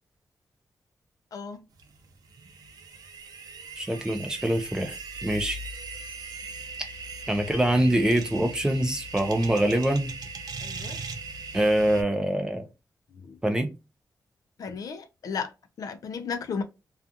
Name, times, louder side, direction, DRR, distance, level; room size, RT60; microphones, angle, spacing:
voice 1, 1.3-1.6 10.6-11.0 13.1-13.4 14.6-15.5 15.8-16.6, left 5 dB, 65° left, 0.5 m, -34 dB
sound 1, 1.8-12.0, right 3 dB, 85° right, 0.6 m, -39 dB
voice 2, 3.8-5.6 7.3-10.1 11.5-12.6 13.4-13.7, right 1 dB, 10° right, 0.5 m, -24 dB
2.4 x 2.4 x 2.7 m
wide cardioid pair, 175°, 7 cm